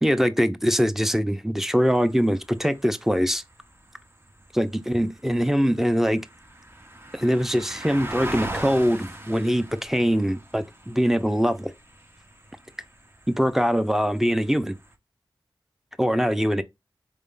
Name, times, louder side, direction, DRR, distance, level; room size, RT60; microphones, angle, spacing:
voice 1, 0.0-3.4 4.5-6.2 7.1-11.7 13.3-14.8 16.0-16.6, equal, 5° right, 0.7 m, -23 dB
sound 1, 1.8-14.9, right 1 dB, 25° right, 0.9 m, -41 dB
4.4 x 3.5 x 2.5 m
cardioid pair, 40°, 9 cm